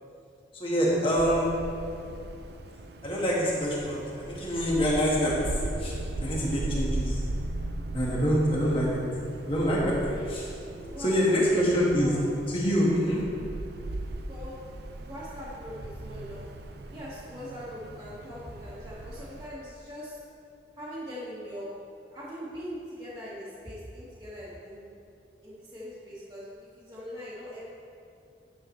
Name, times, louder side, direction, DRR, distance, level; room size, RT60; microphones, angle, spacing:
voice 1, 0.5-1.5 3.0-5.9 6.2-7.2 7.9-9.0 9.5-10.0 10.3-10.5 11.0-12.1 12.5-13.2, equal, 30° left, -4 dB, 1.5 m, -25 dB
Wind, 0.9-19.5, right 1 dB, 60° right, 0.5 m, -38 dB
voice 2, 10.0-10.3 10.8-11.6 12.0-12.2 14.3-14.6 15.0-16.4 16.9-20.2 20.8-21.7 22.0-24.9 25.4-27.6, equal, 20° right, -13 dB, 1.4 m, -41 dB
10.0 x 6.9 x 3.1 m, 2.6 s
head